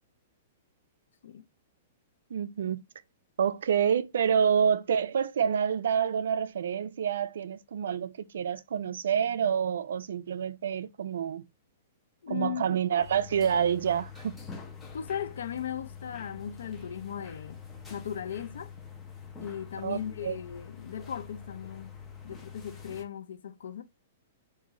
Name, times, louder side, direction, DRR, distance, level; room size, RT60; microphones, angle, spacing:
voice 1, 2.3-2.8 3.4-11.4 12.3-14.4 19.8-20.4, right 8 dB, 80° right, 0.3 m, -28 dB
voice 2, 12.2-12.8 14.9-18.7 19.4-21.9 22.2-23.8, left 8 dB, 90° left, 0.4 m, -37 dB
sound 1, 13.0-23.0, left 6 dB, 10° left, 0.6 m, -45 dB
3.7 x 2.5 x 3.0 m
hypercardioid pair, 175°, 0 cm